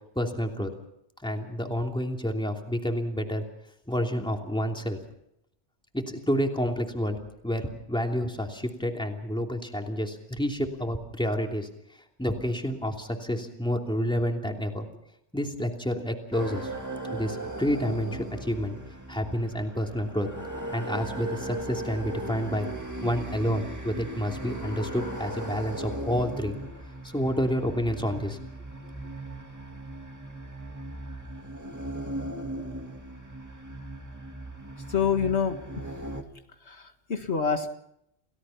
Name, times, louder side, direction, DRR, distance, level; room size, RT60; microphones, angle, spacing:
voice 1, 0.1-0.7 1.2-3.4 3.9-5.0 5.9-7.2 7.4-11.7 12.2-14.9 15.3-16.7 17.1-18.7 19.1-20.3 20.7-22.7 23.0-26.6 27.0-28.4, equal, 5° left, 2 dB, 2.9 m, -29 dB
sound 1, 16.3-36.2, right 1 dB, 15° right, 2.5 m, -38 dB
voice 2, 34.9-35.6 36.6-37.7, left 6 dB, 70° left, 5 dB, 2.0 m, -26 dB
29.0 x 17.5 x 5.8 m, 0.76 s
omnidirectional pair, 1.2 m